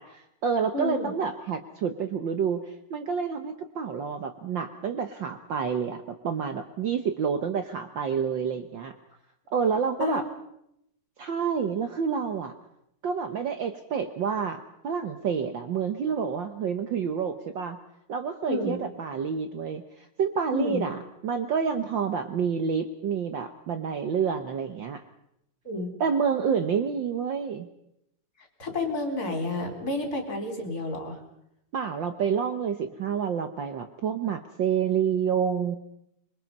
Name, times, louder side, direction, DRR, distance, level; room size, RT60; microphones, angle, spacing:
voice 1, 0.0-8.9 9.5-10.2 11.2-12.5 13.0-17.8 18.1-25.0 26.0-27.7 31.7-35.8, right 6 dB, 85° right, 8 dB, 1.0 m, -28 dB
voice 2, 0.7-1.1 10.0-10.2 18.5-18.8 20.5-20.9 25.6-25.9 28.6-31.2, left 2 dB, 30° left, 4 dB, 4.2 m, -30 dB
26.0 x 22.5 x 5.4 m, 0.79 s
omnidirectional pair, 3.6 m